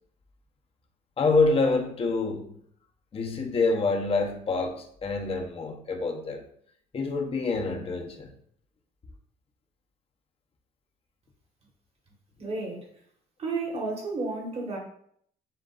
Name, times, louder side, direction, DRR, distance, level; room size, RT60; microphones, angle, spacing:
voice 1, 1.2-2.5 3.1-6.4 6.9-8.3, left 3 dB, 35° left, 0.9 m, -26 dB
voice 2, 12.4-12.8 13.4-14.8, right 3 dB, 35° right, 1.5 m, -32 dB
7.6 x 2.6 x 2.5 m
cardioid pair, 110°, 17 cm